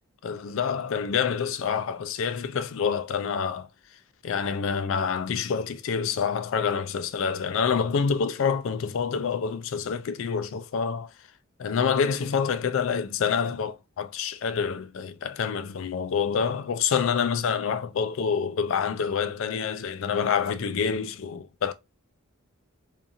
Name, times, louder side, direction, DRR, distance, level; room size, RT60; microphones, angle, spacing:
voice 1, 0.2-3.7 4.2-11.1 11.6-21.7, left 6 dB, 60° left, 0.3 m, -27 dB
2.7 x 2.4 x 2.4 m
head